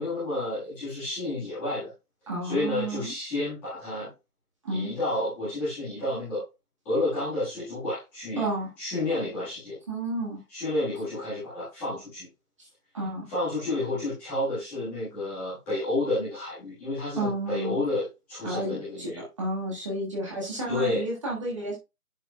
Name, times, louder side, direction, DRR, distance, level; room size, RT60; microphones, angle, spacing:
voice 1, 0.0-1.9 2.4-4.1 4.7-6.4 6.8-8.4 8.8-9.8 10.5-12.3 13.3-19.2 20.7-21.0, left 2 dB, 5° left, -14 dB, 1.5 m, -30 dB
voice 2, 2.3-3.1 4.6-4.9 8.4-8.7 9.9-10.4 12.9-13.3 17.2-17.8 18.4-21.8, right 1 dB, 20° right, -4 dB, 1.5 m, -31 dB
10.5 x 4.9 x 2.2 m, 0.26 s
figure-of-eight pair, 165°, 46 cm